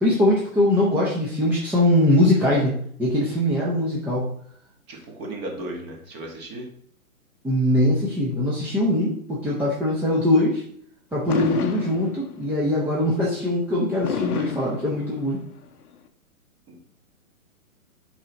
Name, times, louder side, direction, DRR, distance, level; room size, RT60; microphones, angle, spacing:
voice 1, 0.0-2.7 3.0-4.3 7.4-10.6 11.1-15.4, left 1 dB, 5° right, -6 dB, 0.7 m, -21 dB
voice 2, 4.9-6.7 16.7-16.9, right 1 dB, 25° right, 1 dB, 1.6 m, -35 dB
Fireworks, 11.3-12.6 14.0-15.6, left 7 dB, 85° left, 0.8 m, -30 dB
6.2 x 4.7 x 4.1 m, 0.63 s
hypercardioid pair, 140°, 43 cm